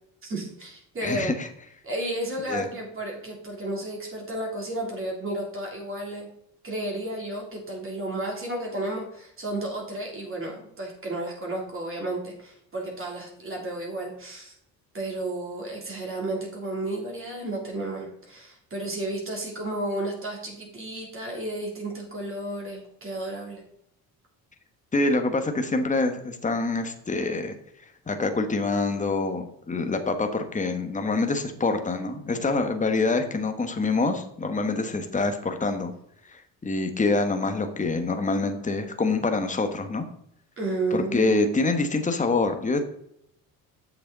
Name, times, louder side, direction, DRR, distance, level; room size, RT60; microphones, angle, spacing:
voice 1, 0.2-1.3 1.8-6.3 6.6-14.5 14.9-23.6 40.6-41.5, right 2 dB, 35° right, -2 dB, 3.2 m, -32 dB
voice 2, 1.0-1.5 2.5-2.7 24.9-27.6 28.1-35.9 36.3-40.0 40.9-42.8, left 3 dB, 20° left, 7 dB, 1.2 m, -26 dB
7.8 x 6.7 x 3.9 m, 0.73 s
cardioid pair, 100°, 36 cm